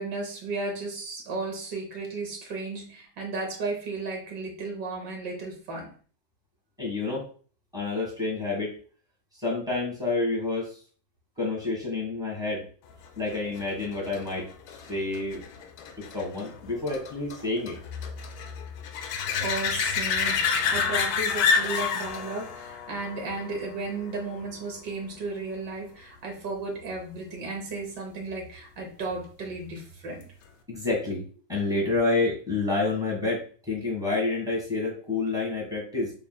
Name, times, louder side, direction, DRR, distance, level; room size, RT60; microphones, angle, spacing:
voice 1, 0.0-5.9 7.1-7.2 19.4-30.2, right 3 dB, 60° right, 1 dB, 1.3 m, -34 dB
voice 2, 6.8-7.2 7.7-8.8 9.4-10.7 11.4-12.6 13.2-14.5 14.9-15.4 16.0-17.8 30.7-36.1, left 3 dB, ahead, -2 dB, 1.2 m, -28 dB
sound 1, 13.3-24.6 30.2-30.3, left 6 dB, 80° left, 1.4 m, -30 dB
5.0 x 3.0 x 2.2 m, 0.42 s
omnidirectional pair, 2.3 m